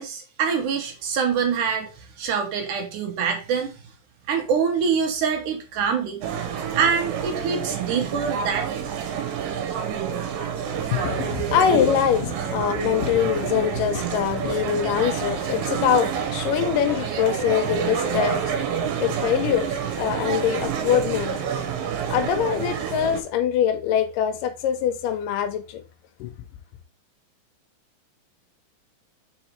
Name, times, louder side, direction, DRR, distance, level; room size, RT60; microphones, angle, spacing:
voice 1, 0.0-3.7 4.3-6.2 6.8-8.8, right 6 dB, 70° right, 2.5 m, -25 dB
sound 1, 6.2-23.2, right 8 dB, 90° right, 2.7 m, -28 dB
voice 2, 10.7-21.6 22.1-25.8 26.2-26.3, left 9 dB, 75° left, 2.3 m, -24 dB
5.1 x 4.6 x 4.4 m
omnidirectional pair, 4.0 m